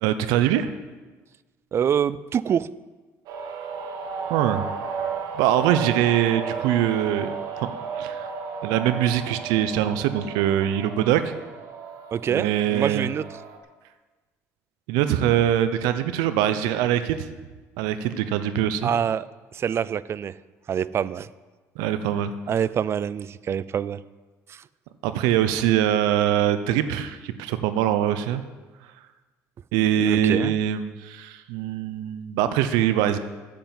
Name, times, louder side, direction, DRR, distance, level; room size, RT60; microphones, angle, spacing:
voice 1, 0.0-0.7 4.3-4.7 5.3-7.3 7.6-7.7 7.9-8.3 8.6-11.3 12.3-13.1 14.9-17.3 17.8-18.9 21.8-22.3 25.0-28.4 29.7-33.2, right 11 dB, 90° right, 11 dB, 0.7 m, -23 dB
voice 2, 1.7-2.7 12.1-13.2 18.8-19.3 19.5-20.4 20.7-21.3 22.5-24.0 24.5-24.6 30.0-30.5, right 8 dB, 40° right, 18 dB, 0.4 m, -25 dB
sound 1, 3.3-13.6, right 5 dB, 70° right, 1.4 m, -34 dB
8.6 x 7.9 x 7.7 m, 1.3 s
cardioid pair, 95°, 7 cm